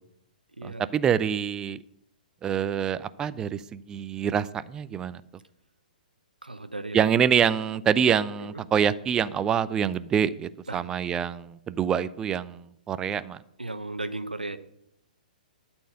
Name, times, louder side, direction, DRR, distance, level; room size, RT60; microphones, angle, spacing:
voice 1, 0.6-1.8 2.4-5.2 6.9-13.4, right 8 dB, 15° right, 16 dB, 0.4 m, -26 dB
voice 2, 6.4-7.0 8.4-8.6 10.7-10.9 13.6-14.6, right 2 dB, 85° right, 10 dB, 0.8 m, -35 dB
12.5 x 4.4 x 7.9 m, 0.78 s
figure-of-eight pair, 120°, 5 cm